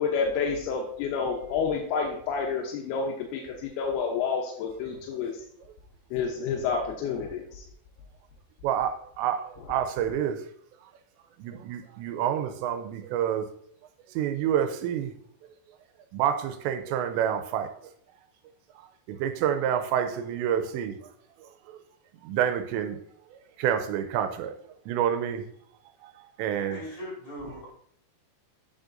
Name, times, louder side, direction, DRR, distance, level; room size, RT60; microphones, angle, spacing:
voice 1, 0.0-5.3 6.1-7.6 10.1-10.2, left 5 dB, 75° left, 0 dB, 2.5 m, -29 dB
voice 2, 8.6-10.4 11.4-13.5 14.2-15.1 16.1-17.7 19.1-21.0 22.2-23.0 23.6-24.5 24.9-25.4 26.0-26.1 26.4-26.8, right 9 dB, 85° right, 8 dB, 2.8 m, -28 dB
voice 3, 26.7-27.7, equal, 40° left, -5 dB, 3.5 m, -39 dB
8.7 x 6.3 x 2.6 m, 0.63 s
omnidirectional pair, 5.1 m